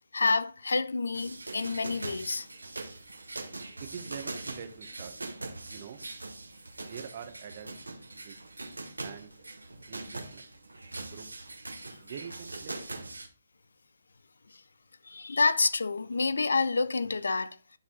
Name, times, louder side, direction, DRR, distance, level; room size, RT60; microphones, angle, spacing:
voice 1, 0.1-2.5 14.5-14.6 15.0-17.6, left 4 dB, 75° left, 0.5 m, -28 dB
sound 1, 1.1-13.3, right 2 dB, 90° right, 1.2 m, -42 dB
voice 2, 3.8-5.1 5.7-6.0 6.8-7.7 8.1-8.4 9.0-9.3 9.9-10.5 11.0-11.3 12.0-13.0, right 8 dB, 45° right, 1.1 m, -44 dB
10.0 x 4.1 x 3.9 m
figure-of-eight pair, 140°, 0 cm